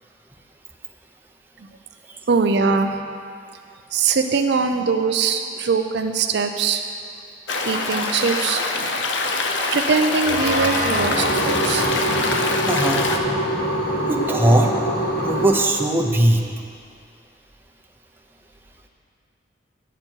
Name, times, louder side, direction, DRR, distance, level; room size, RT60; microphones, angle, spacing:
voice 1, 2.3-3.0 3.9-6.8 7.7-9.1 9.7-12.3, right 5 dB, 60° right, 6 dB, 0.5 m, -22 dB
Stream, 7.5-13.2, left 3 dB, 75° left, 0.7 m, -24 dB
sound 1, 10.2-15.5, right 1 dB, 55° left, 2.5 m, -24 dB
voice 2, 12.7-13.0 14.1-14.7 15.2-16.4, right 1 dB, 10° right, 1 dB, 0.7 m, -19 dB
10.0 x 8.0 x 4.5 m, 2.3 s
head